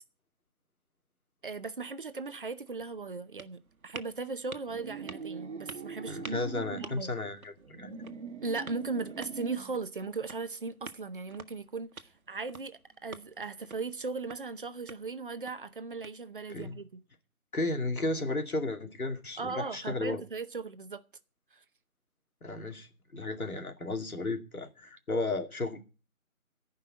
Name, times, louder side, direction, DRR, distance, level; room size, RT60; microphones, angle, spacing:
voice 1, 1.4-6.4 6.7-7.1 8.4-17.0 19.4-21.0, right 4 dB, 40° right, 0.8 m, -38 dB
sound 1, 2.2-16.6, right 4 dB, 75° right, 1.3 m, -51 dB
sound 2, 4.7-7.0 7.6-9.8, right 5 dB, 55° right, 1.4 m, -42 dB
voice 2, 6.1-7.9 16.5-16.8 17.5-20.2 22.4-25.8, left 2 dB, 80° left, 2.6 m, -34 dB
14.0 x 5.5 x 8.5 m
figure-of-eight pair, 160°, 43 cm